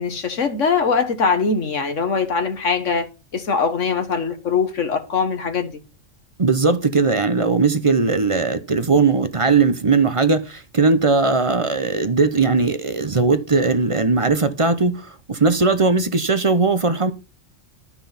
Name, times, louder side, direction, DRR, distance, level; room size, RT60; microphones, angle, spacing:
voice 1, 0.0-3.1 3.3-5.8, left 5 dB, 65° left, 1.7 m, -22 dB
voice 2, 6.4-17.1, right 4 dB, 30° right, 0.7 m, -19 dB
12.5 x 6.0 x 5.8 m
omnidirectional pair, 1.4 m